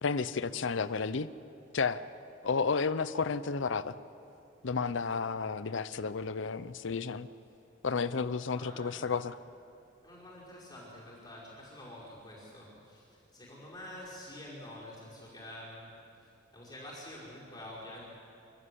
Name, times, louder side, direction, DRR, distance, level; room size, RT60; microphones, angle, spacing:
voice 1, 0.0-1.3 1.7-2.0 2.4-4.0 4.6-7.3 7.8-9.3, left 5 dB, 70° left, 15 dB, 0.6 m, -32 dB
voice 2, 8.5-9.1 10.0-15.9 16.5-18.1, left 1 dB, 20° left, -6 dB, 5.0 m, -47 dB
28.0 x 13.0 x 8.3 m, 2.7 s
head